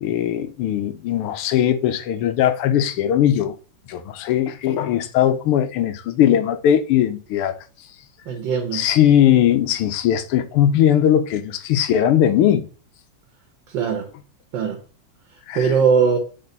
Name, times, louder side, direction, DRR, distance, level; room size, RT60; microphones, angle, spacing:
voice 1, 0.0-3.5 3.9-7.5 8.7-12.7 15.5-15.7, left 10 dB, 80° left, 1.6 m, -19 dB
voice 2, 8.2-8.9 13.7-14.1 14.5-14.8 15.5-16.2, right 6 dB, 60° right, 1.7 m, -20 dB
7.7 x 4.4 x 3.9 m
omnidirectional pair, 2.4 m